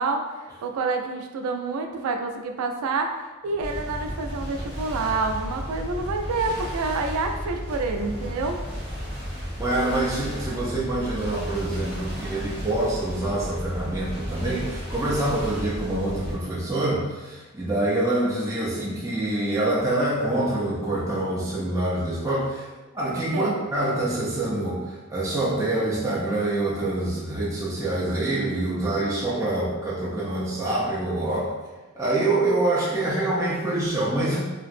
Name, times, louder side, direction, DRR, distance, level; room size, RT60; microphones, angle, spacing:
voice 1, 0.0-8.6 23.3-23.6, right 3 dB, 85° right, 4 dB, 0.3 m, -28 dB
sound 1, 3.6-16.4, equal, 25° left, 1.1 m, -34 dB
voice 2, 9.6-22.7 22.9-31.5 32.0-34.4, right 1 dB, 15° right, -8 dB, 0.4 m, -26 dB
2.9 x 2.5 x 2.5 m, 1.2 s
head